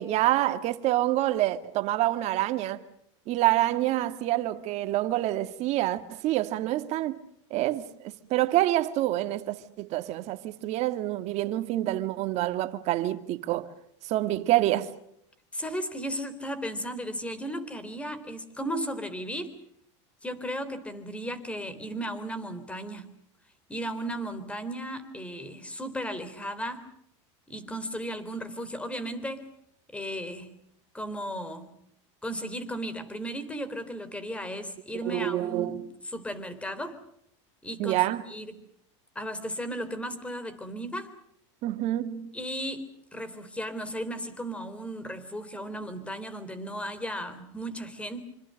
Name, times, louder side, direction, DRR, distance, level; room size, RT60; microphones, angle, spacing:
voice 1, 0.0-2.8 3.3-7.2 7.5-13.7 14.1-14.9 35.1-35.9 37.8-38.3 41.6-42.3, right 15 dB, 45° right, 2.0 m, -27 dB
voice 2, 15.5-19.5 20.2-23.1 23.7-26.9 27.5-29.5 29.9-30.5 30.9-31.7 32.2-37.0 37.6-38.6 39.2-41.1 42.3-48.2, equal, 10° left, 3.7 m, -35 dB
27.0 x 26.5 x 6.5 m
supercardioid pair, 130°, 16 cm